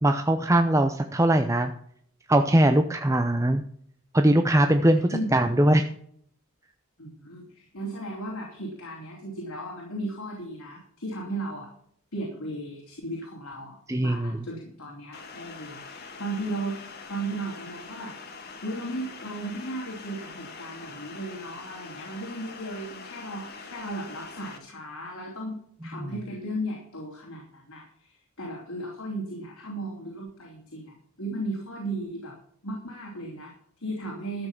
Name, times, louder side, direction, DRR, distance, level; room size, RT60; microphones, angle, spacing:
voice 1, 0.0-1.7 2.3-3.6 4.1-5.9 13.9-14.4, right 1 dB, 15° right, 6 dB, 0.6 m, -21 dB
voice 2, 7.0-11.7 12.1-18.1 18.6-32.4 32.6-34.5, right 1 dB, 85° left, -2 dB, 3.4 m, -36 dB
sound 1, 15.1-24.6, left 4 dB, 45° left, 1.9 m, -43 dB
13.0 x 7.5 x 6.0 m, 0.64 s
head